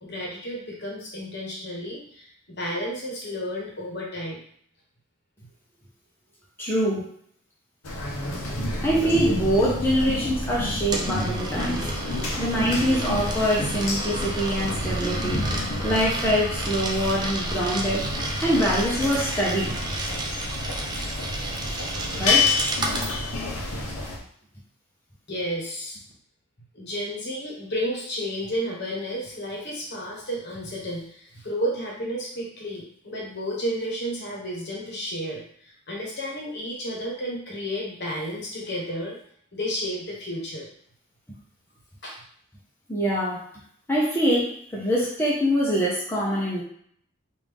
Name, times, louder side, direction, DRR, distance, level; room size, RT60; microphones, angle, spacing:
voice 1, 0.0-4.4 25.3-26.0 26.7-39.2 39.5-40.7 42.0-42.2, equal, 50° left, -2 dB, 1.1 m, -32 dB
voice 2, 6.6-7.1 8.8-11.8 12.4-15.4 15.8-18.1 18.4-19.7 22.2-22.5 42.9-43.4 43.9-46.6, equal, 10° left, -6 dB, 0.7 m, -24 dB
sound 1, 7.8-24.2, left 2 dB, 85° left, 0.8 m, -29 dB
Coin (dropping), 10.4-23.1, right 2 dB, 20° right, 0.4 m, -33 dB
3.4 x 2.6 x 3.4 m, 0.63 s
head